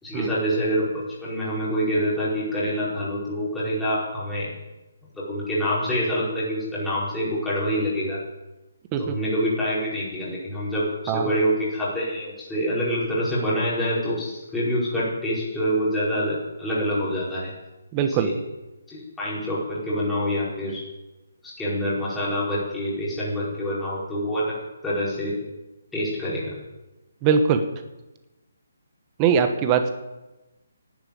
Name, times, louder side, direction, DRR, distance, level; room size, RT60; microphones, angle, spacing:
voice 1, 0.0-4.5 5.2-8.2 9.0-17.5 18.1-18.3 18.9-20.8 21.4-24.5 24.8-25.3 25.9-26.5, equal, 5° left, -9 dB, 4.9 m, -26 dB
voice 2, 17.9-18.3 27.2-27.6 29.2-29.9, right 6 dB, 20° right, 7 dB, 1.1 m, -21 dB
11.5 x 9.0 x 8.6 m, 1.0 s
hypercardioid pair, 155°, 0 cm